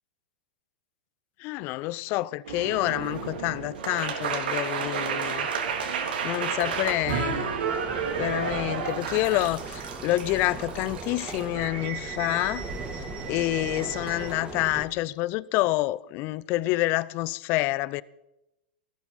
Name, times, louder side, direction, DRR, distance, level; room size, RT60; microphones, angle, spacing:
voice 1, 1.4-5.5 5.8-7.6 8.1-12.6 12.9-18.0, left 18 dB, 45° left, 0.6 m, -28 dB
sound 1, 2.4-14.3, right 6 dB, 75° right, 3.1 m, -32 dB
sound 2, 6.6-14.9, right 3 dB, 20° right, 2.6 m, -39 dB
18.0 x 14.5 x 4.2 m
hypercardioid pair, 110°, 5 cm